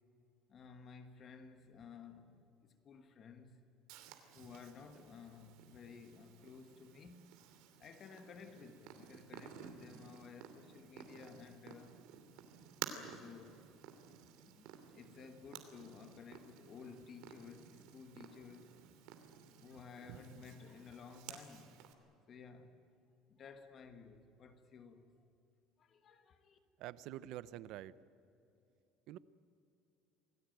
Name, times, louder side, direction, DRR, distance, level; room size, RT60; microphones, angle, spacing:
voice 1, 0.5-3.6 4.3-7.3 7.8-12.0 12.9-13.6 14.4-18.8 19.1-21.8 22.3-22.8 23.3-25.2 25.8-26.6, left 5 dB, 30° left, 1.3 m, -55 dB
Purr, 3.9-21.9, right 9 dB, 75° right, 2.8 m, -53 dB
voice 2, 26.8-27.9 29.1-29.2, right 13 dB, 55° right, 0.7 m, -46 dB
27.5 x 18.5 x 9.2 m
cardioid pair, 175°, 0 cm